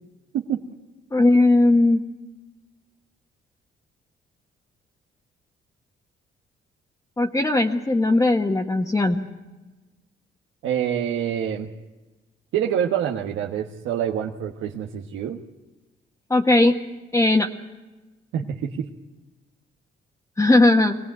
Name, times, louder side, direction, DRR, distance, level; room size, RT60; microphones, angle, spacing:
voice 1, 1.1-2.0 7.2-9.2 16.3-16.8 17.1-17.5 20.4-21.0, left 2 dB, 15° left, 0 dB, 1.4 m, -18 dB
voice 2, 10.6-11.7 12.5-15.4 18.3-18.9, right 9 dB, 85° right, 0 dB, 1.4 m, -26 dB
23.5 x 18.0 x 9.1 m, 1.1 s
cardioid pair, 90°, 20 cm